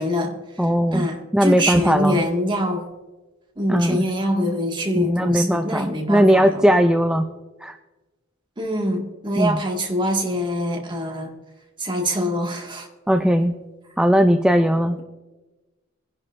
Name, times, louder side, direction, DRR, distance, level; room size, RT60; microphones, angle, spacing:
voice 1, 0.0-0.6 0.9-2.8 3.6-6.7 8.6-11.3 11.8-12.9, equal, 25° right, 0 dB, 1.9 m, -24 dB
voice 2, 0.6-1.1 1.3-2.2 3.7-4.0 4.9-7.2 7.6-7.7 9.4-9.6 13.1-13.6 14.0-15.0, equal, 5° right, 6 dB, 0.4 m, -18 dB
21.0 x 11.0 x 2.6 m, 1.1 s
head